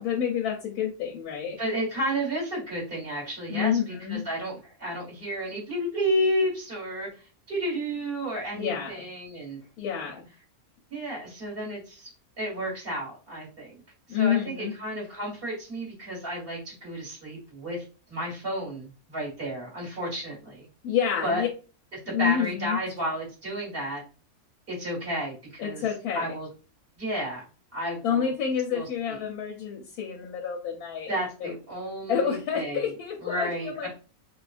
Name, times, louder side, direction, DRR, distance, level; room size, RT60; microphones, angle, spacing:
voice 1, 0.0-1.6 3.5-4.2 8.5-9.0 9.8-10.3 14.1-14.7 20.8-21.5 22.1-22.8 25.6-26.3 28.0-31.1 31.4-31.5 32.1-33.9, left 8 dB, 85° left, 1 dB, 1.1 m, -28 dB
voice 2, 1.6-7.1 7.5-9.6 10.9-12.1 12.4-13.8 14.1-17.8 18.1-20.7 21.2-21.4 22.1-24.0 24.7-25.8 26.1-26.5 27.0-27.4 27.7-28.3 28.7-29.2 31.1-32.9 33.2-33.9, equal, 40° right, -3 dB, 1.7 m, -32 dB
3.2 x 2.3 x 2.4 m, 0.35 s
omnidirectional pair, 1.6 m